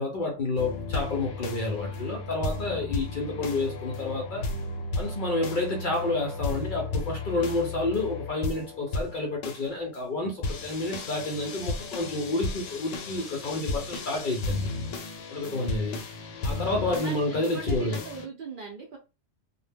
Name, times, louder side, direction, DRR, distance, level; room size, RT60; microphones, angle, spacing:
voice 1, 0.0-4.5 4.9-14.7 15.3-16.0 16.4-18.0, left 2 dB, 55° left, 0.5 m, -29 dB
sound 1, 0.6-18.3, left 3 dB, 85° left, 0.9 m, -34 dB
voice 2, 15.4-15.9 17.0-19.0, right 4 dB, 60° right, 0.6 m, -40 dB
2.1 x 2.1 x 3.3 m
omnidirectional pair, 1.3 m